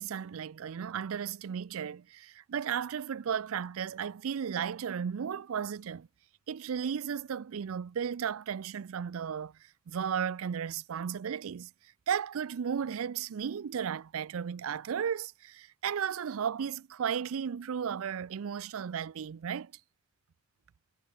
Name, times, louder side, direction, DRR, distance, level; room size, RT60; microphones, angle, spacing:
voice 1, 0.0-6.1 6.5-9.5 9.9-11.7 12.1-19.7, right 7 dB, 70° right, 0.4 m, -34 dB
head